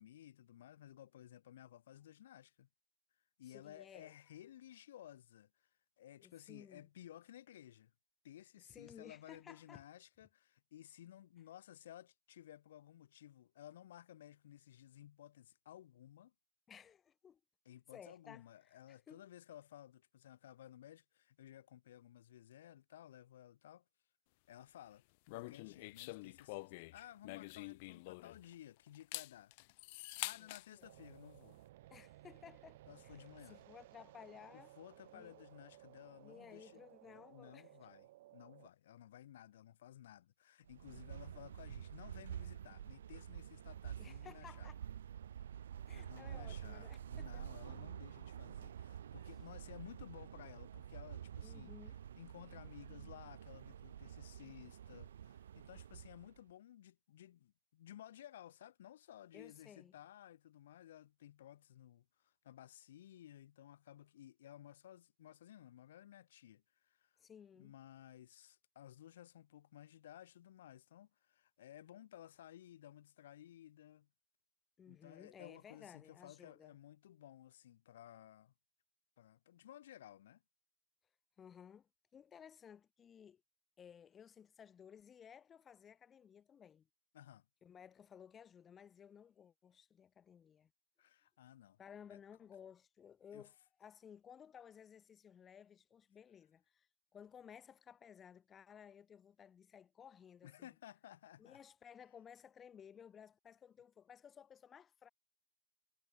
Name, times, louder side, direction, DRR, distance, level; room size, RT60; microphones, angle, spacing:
voice 1, 0.0-2.7 3.4-5.7 6.0-7.9 8.2-16.3 17.6-23.8 24.5-25.0 25.3-29.5 30.2-31.6 32.9-33.6 34.5-44.7 45.9-51.7 52.2-67.1 67.5-74.1 74.9-78.5 79.2-80.4 87.1-87.5 91.0-91.8 92.1-92.2 93.3-93.5 100.4-101.6, left 12 dB, 50° left, 3.1 m, -57 dB
voice 2, 3.5-4.1 6.2-6.9 8.7-9.8 16.7-17.4 17.9-19.2 30.4-30.5 30.8-30.9 31.9-32.8 33.0-33.2 33.5-34.7 35.1-35.4 36.2-37.7 44.0-44.8 45.9-47.4 51.4-52.0 59.3-59.9 67.2-67.7 74.8-76.8 81.4-83.4 83.8-86.9 87.6-90.7 91.8-93.5 93.8-100.7 101.4-105.1, left 8 dB, 10° left, 7.2 m, -58 dB
sound 1, 25.3-28.5 28.9-30.7, left 25 dB, 30° left, 1.9 m, -46 dB
sound 2, 30.8-38.7, right 15 dB, 40° right, 2.2 m, -60 dB
sound 3, 40.7-56.4, right 9 dB, 60° right, 2.1 m, -49 dB
hypercardioid pair, 170°, 0 cm